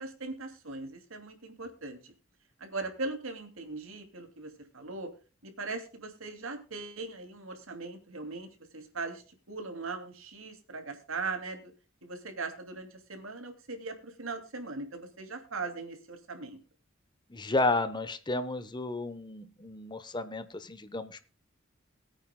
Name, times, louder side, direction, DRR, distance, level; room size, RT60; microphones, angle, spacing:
voice 1, 0.0-2.1 2.6-5.1 5.4-11.7 12.0-16.6, right 3 dB, 80° right, 6 dB, 2.7 m, -39 dB
voice 2, 17.3-21.2, left 2 dB, 20° left, 12 dB, 1.0 m, -32 dB
21.5 x 9.0 x 2.3 m, 0.34 s
head